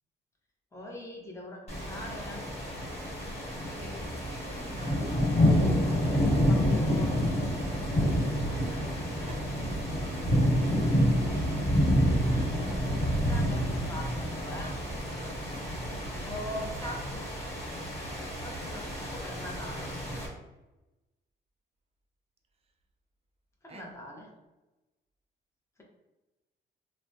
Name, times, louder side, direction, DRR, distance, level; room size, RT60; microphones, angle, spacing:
voice 1, 0.7-2.4 6.2-7.8 12.2-14.8 16.2-17.3 17.7-19.9 23.6-24.3, left 1 dB, 15° left, -1 dB, 0.7 m, -43 dB
sound 1, 1.7-20.3, equal, 30° left, 1.4 m, -28 dB
voice 2, 3.6-5.8 9.2-11.1 16.6-17.0 23.7-23.9, right 2 dB, 30° right, 4 dB, 0.5 m, -48 dB
3.3 x 2.1 x 2.6 m, 1.1 s
cardioid pair, 90°, 20 cm